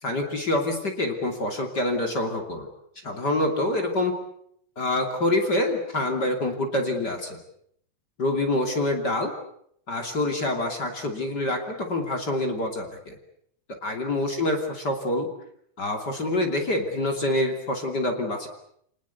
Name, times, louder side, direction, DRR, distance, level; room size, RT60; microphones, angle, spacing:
voice 1, 0.0-2.7 3.0-4.1 4.8-7.4 8.2-9.3 9.9-13.2 13.7-15.3 15.8-18.5, left 1 dB, 30° left, 4 dB, 3.1 m, -26 dB
29.0 x 19.5 x 8.3 m, 0.70 s
omnidirectional pair, 3.8 m